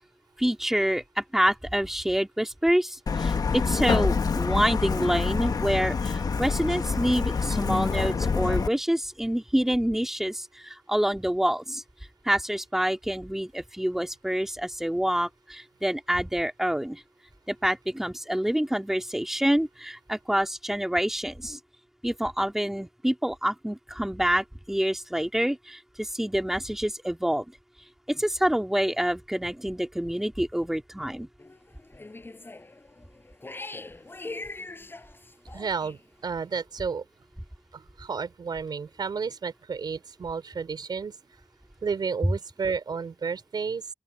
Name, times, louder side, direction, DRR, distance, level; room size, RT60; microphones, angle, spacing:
voice 1, 0.4-11.8 12.2-17.0 17.5-21.6 22.0-27.4 28.1-31.3, equal, 5° right, 2.4 m, -27 dB
Truck, 3.1-8.7, left 5 dB, 60° left, 1.0 m, -26 dB
sound 1, 31.4-36.0, left 2 dB, 30° left, 7.0 m, -42 dB
voice 2, 35.5-37.0 37.7-41.2 41.8-43.8, right 5 dB, 75° right, 4.4 m, -32 dB
open air
wide cardioid pair, 95°, 7 cm